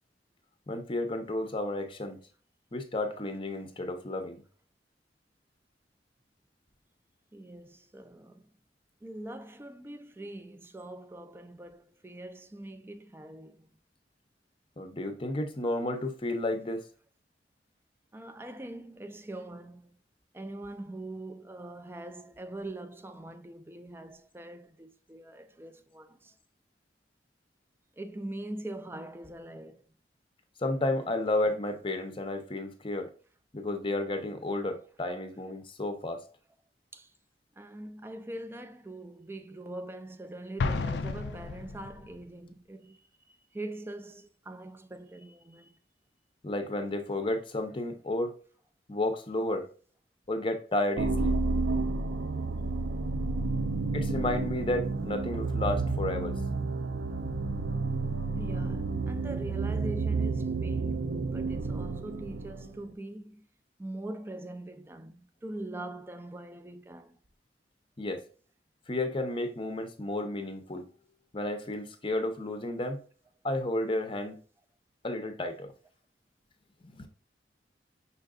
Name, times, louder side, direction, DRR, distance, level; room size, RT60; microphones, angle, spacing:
voice 1, 0.7-2.2 2.7-4.4 14.8-16.8 30.6-33.1 33.5-36.2 46.4-48.3 48.9-49.7 50.3-51.4 53.9-56.4 68.0-68.2 68.9-70.9 71.3-73.0 73.4-74.4 75.0-75.7 76.8-77.1, left 1 dB, 30° left, 0.7 m, -32 dB
voice 2, 7.3-8.5 9.0-13.7 18.1-20.0 20.3-26.3 28.0-29.8 36.9-37.1 37.6-43.0 43.5-45.8 53.7-54.0 55.1-55.3 58.3-63.5 63.8-67.2, right 1 dB, 15° right, 0.4 m, -42 dB
Explosion, 40.6-42.2, left 4 dB, 70° left, 0.4 m, -32 dB
sound 1, 51.0-62.8, right 3 dB, 75° right, 0.4 m, -31 dB
5.6 x 3.8 x 2.3 m
head